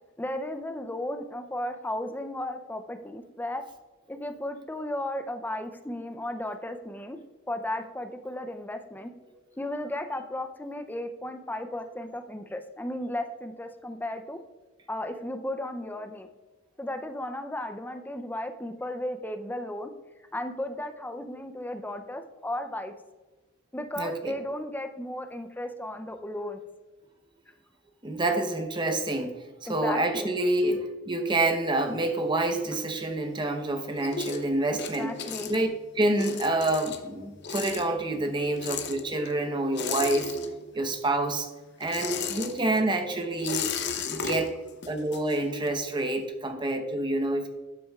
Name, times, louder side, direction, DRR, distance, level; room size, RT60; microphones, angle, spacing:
voice 1, 0.2-3.6 4.1-7.2 7.5-9.1 9.6-14.4 14.9-16.3 16.8-19.9 20.3-22.9 23.7-26.6 29.7-30.3 34.7-35.5, left 1 dB, 10° left, 7 dB, 0.5 m, -35 dB
voice 2, 24.0-24.3 28.0-29.3 29.7-35.1 35.5-35.7 36.0-40.3 40.7-41.5 41.8-43.7 44.1-44.5 44.9-47.5, right 2 dB, 25° right, 5 dB, 0.8 m, -27 dB
sound 1, 31.8-33.4 33.7-40.9 41.2-45.9, left 6 dB, 55° left, 0.7 m, -36 dB
11.5 x 6.1 x 2.4 m, 1.2 s
head